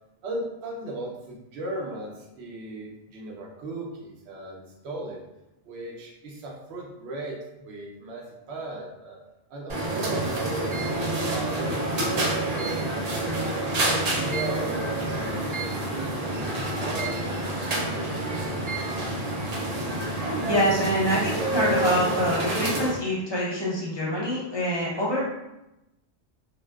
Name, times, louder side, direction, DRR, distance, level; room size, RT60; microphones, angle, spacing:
voice 1, 0.2-5.2 5.6-9.2 9.5-12.9 13.4-18.3, right 2 dB, 75° right, -1 dB, 0.9 m, -37 dB
sound 1, 9.7-23.0, right 1 dB, 55° right, 0.4 m, -28 dB
voice 2, 20.4-25.2, equal, 30° left, -6 dB, 0.6 m, -25 dB
2.5 x 2.2 x 2.2 m, 0.94 s
omnidirectional pair, 1.1 m